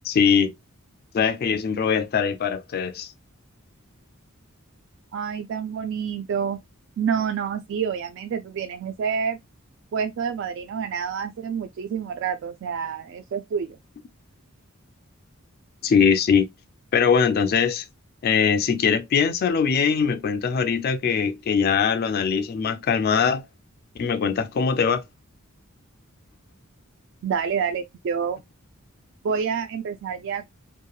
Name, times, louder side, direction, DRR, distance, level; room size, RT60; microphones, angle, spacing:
voice 1, 0.0-0.5 1.1-3.1 15.8-16.5 16.9-17.8 18.2-23.4 24.0-25.0, left 6 dB, 45° left, 0.3 m, -21 dB
voice 2, 5.1-6.6 7.0-9.4 9.9-13.8 27.2-28.4 29.2-30.4, right 7 dB, 55° right, 0.3 m, -28 dB
2.9 x 2.2 x 2.2 m
head